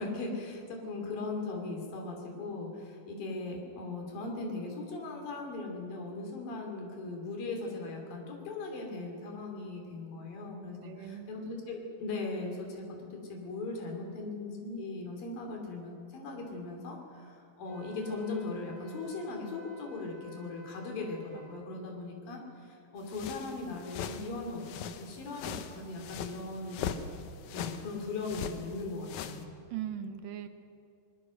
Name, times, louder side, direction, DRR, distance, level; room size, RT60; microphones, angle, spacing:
voice 1, 0.0-27.1 27.5-29.5, left 3 dB, 90° left, 1 dB, 4.8 m, -39 dB
voice 2, 10.8-11.3 29.7-30.5, right 10 dB, 80° right, 8 dB, 2.7 m, -39 dB
Wind instrument woodwind instrument, 17.6-21.6, equal, 35° left, 4.5 m, -54 dB
sound 1, 23.1-29.5, left 7 dB, 70° left, 2.2 m, -41 dB
24.5 x 20.0 x 6.5 m, 2.4 s
omnidirectional pair, 3.9 m